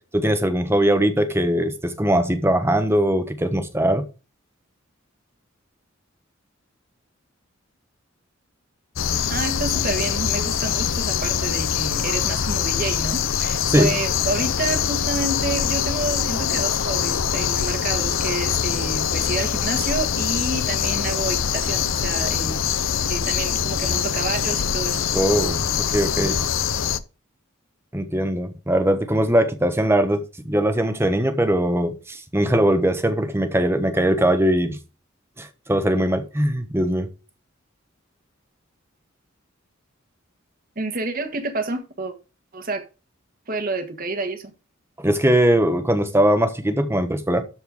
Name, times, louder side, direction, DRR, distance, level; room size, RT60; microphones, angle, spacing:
voice 1, 0.0-4.1 13.7-13.9 25.1-25.6 25.9-26.4 27.9-34.8 35.4-37.1 45.0-47.4, right 1 dB, 10° right, 1.1 m, -20 dB
sound 1, 9.0-27.0, left 8 dB, 70° left, 0.7 m, -23 dB
voice 2, 9.3-22.5 23.1-25.0 40.7-42.1 42.5-42.8 43.5-44.5, right 3 dB, 45° right, 1.6 m, -29 dB
13.0 x 4.4 x 4.9 m
head